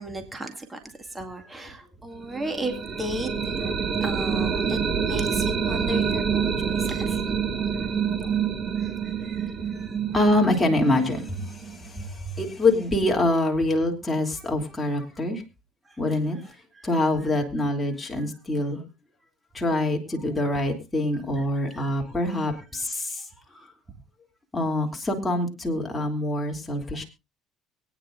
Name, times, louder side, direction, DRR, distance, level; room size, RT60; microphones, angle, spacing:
voice 1, 0.0-3.7 4.0-4.8 5.0-7.2 7.6-7.9 8.8-10.1 12.0-12.1 15.9-16.0 16.7-16.9 18.2-18.3 21.5-21.9, right 2 dB, 15° right, 5 dB, 2.1 m, -35 dB
sound 1, 2.3-12.1, right 7 dB, 35° right, 2.0 m, -27 dB
voice 2, 10.1-15.4 16.0-16.4 16.8-18.8 19.5-23.3 23.5-23.7 24.5-27.0, left 1 dB, 10° left, 0 dB, 3.0 m, -25 dB
23.0 x 9.6 x 2.6 m, 0.27 s
supercardioid pair, 90°, 0 cm